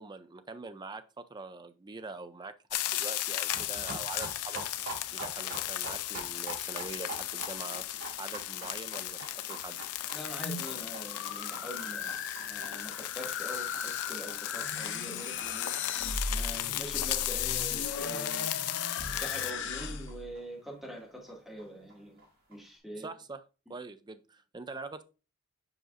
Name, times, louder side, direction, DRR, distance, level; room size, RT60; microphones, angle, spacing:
voice 1, 0.0-4.6 5.1-7.9 8.2-9.8 16.4-16.6 23.0-23.4 23.7-25.0, right 3 dB, 20° right, 0.4 m, -44 dB
sound 1, 2.7-19.5, left 14 dB, 90° left, 0.5 m, -36 dB
sound 2, 3.4-20.7 21.0-21.1 21.3-21.4 21.6-21.7 21.9-22.5, right 2 dB, 65° right, 3.7 m, -47 dB
voice 2, 10.1-16.0 16.3-18.5 19.1-22.2 22.5-23.1, equal, ahead, 2.0 m, -44 dB
sound 3, 10.4-20.3, left 4 dB, 55° left, 0.7 m, -38 dB
7.7 x 5.2 x 2.5 m
head